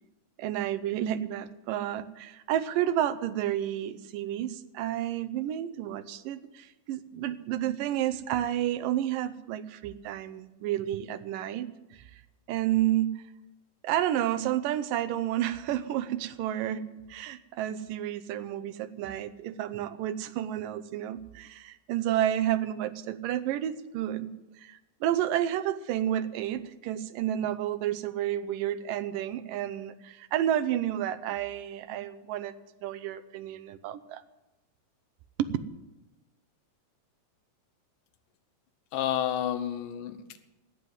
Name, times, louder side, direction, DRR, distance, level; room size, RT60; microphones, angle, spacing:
voice 1, 0.4-12.0 12.5-13.2 13.8-24.3 24.6-32.5 32.8-34.2 35.4-35.6, right 12 dB, 90° right, 13 dB, 2.4 m, -31 dB
voice 2, 38.9-40.4, left 10 dB, 80° left, 9 dB, 2.6 m, -30 dB
11.5 x 9.3 x 9.7 m, 1.0 s
omnidirectional pair, 3.8 m